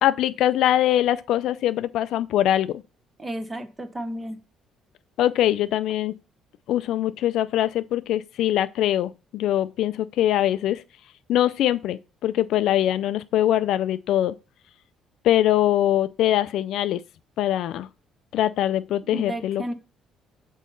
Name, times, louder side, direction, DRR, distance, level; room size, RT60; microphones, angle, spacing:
voice 1, 0.0-2.8 5.2-6.1 6.7-10.8 11.3-14.3 15.2-17.0 17.4-17.9 18.3-19.7, left 12 dB, 65° left, 0.4 m, -22 dB
voice 2, 3.2-4.4 19.1-19.7, right 1 dB, 15° right, 0.8 m, -32 dB
6.4 x 4.0 x 5.4 m
cardioid pair, 160°, 0 cm